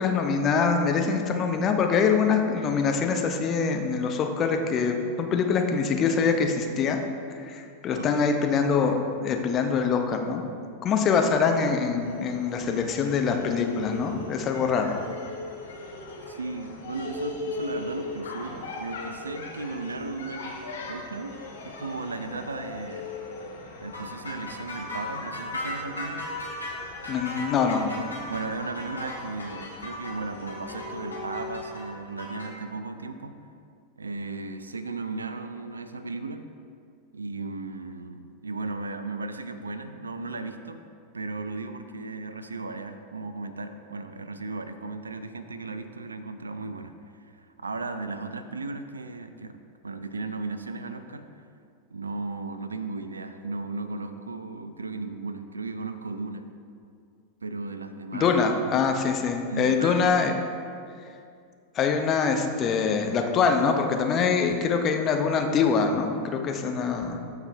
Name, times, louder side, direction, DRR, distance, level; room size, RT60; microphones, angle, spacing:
voice 1, 0.0-7.0 7.4-10.5 10.8-15.0 27.1-27.9 58.1-60.3 61.7-67.2, left 5 dB, 30° left, 4 dB, 0.8 m, -24 dB
sound 1, 12.0-31.8, left 3 dB, 60° left, 1.3 m, -40 dB
voice 2, 16.3-20.6 20.9-21.4 21.6-23.1 23.8-26.3 28.3-33.4 34.0-36.5 37.1-40.8 41.1-46.9 47.3-49.6 49.8-51.3 51.9-56.5 57.4-58.4 59.5-60.2, right 3 dB, 75° right, 10 dB, 0.4 m, -35 dB
sound 2, 23.9-32.5, left 1 dB, 80° left, 1.8 m, -37 dB
14.0 x 4.7 x 3.3 m, 2.4 s
figure-of-eight pair, 90°, 0 cm